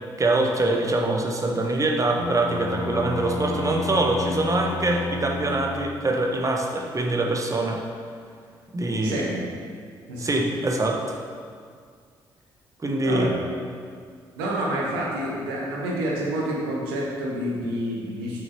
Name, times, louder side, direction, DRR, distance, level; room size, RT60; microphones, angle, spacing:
voice 1, 0.2-7.8 8.7-9.3 10.2-11.2 12.8-13.3, right 2 dB, 25° right, 1 dB, 1.1 m, -24 dB
Bowed string instrument, 2.2-6.1, left 3 dB, 25° left, 0.8 m, -31 dB
voice 2, 8.9-9.4 10.1-10.3 13.0-13.4 14.4-18.4, right 1 dB, 75° right, -3 dB, 1.3 m, -28 dB
6.2 x 6.0 x 4.4 m, 2.1 s
figure-of-eight pair, 40°, 12 cm